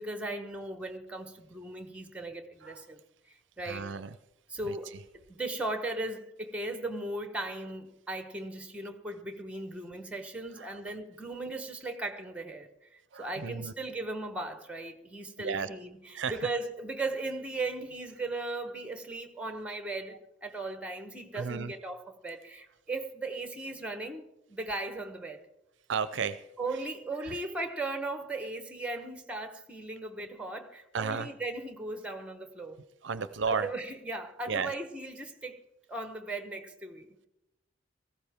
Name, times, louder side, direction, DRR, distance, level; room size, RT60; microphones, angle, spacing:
voice 1, 0.0-3.0 3.3-3.9 4.5-25.4 26.6-32.8 33.5-35.6 35.9-37.3, right 2 dB, 5° right, 1.0 m, -37 dB
voice 2, 3.6-4.2 4.6-5.0 10.5-10.8 13.1-13.7 15.4-15.7 16.1-16.5 21.3-21.7 25.9-26.4 26.7-26.8 27.2-27.3 28.9-29.1 30.9-31.3 33.0-33.7 34.5-34.7, right 5 dB, 60° right, 0.5 m, -34 dB
17.5 x 15.0 x 3.5 m
head